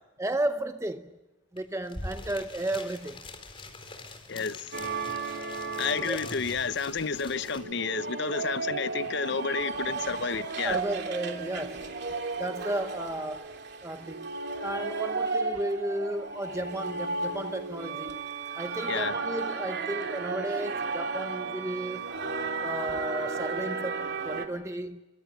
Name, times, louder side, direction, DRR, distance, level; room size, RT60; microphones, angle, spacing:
voice 1, 0.2-1.1 1.5-3.2 6.0-6.2 10.6-11.9 12.4-13.5 13.8-14.3 14.6-18.3 18.5-22.1 22.6-25.0, right 1 dB, 15° right, 0.8 m, -33 dB
sound 1, 1.6-1.7 1.8-7.6, left 2 dB, 25° left, 4.1 m, -43 dB
voice 2, 4.3-4.8 5.8-10.8 18.9-19.2, left 5 dB, 55° left, 0.8 m, -31 dB
sound 2, 4.7-24.5, right 4 dB, 55° right, 2.9 m, -34 dB
29.5 x 25.0 x 6.8 m
head